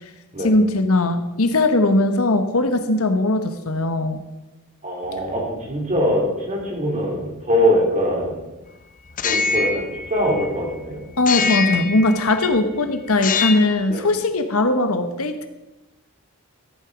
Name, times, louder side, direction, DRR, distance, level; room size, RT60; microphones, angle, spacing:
voice 1, 0.4-4.2 11.2-15.5, left 2 dB, 70° left, 9 dB, 1.1 m, -19 dB
voice 2, 4.8-8.4 9.2-11.0 13.9-14.1, equal, 35° right, -2 dB, 3.9 m, -22 dB
sound 1, 9.1-10.7 11.3-12.6 13.1-13.9, left 5 dB, 35° left, 0.7 m, -24 dB
14.5 x 9.0 x 5.1 m, 1.0 s
head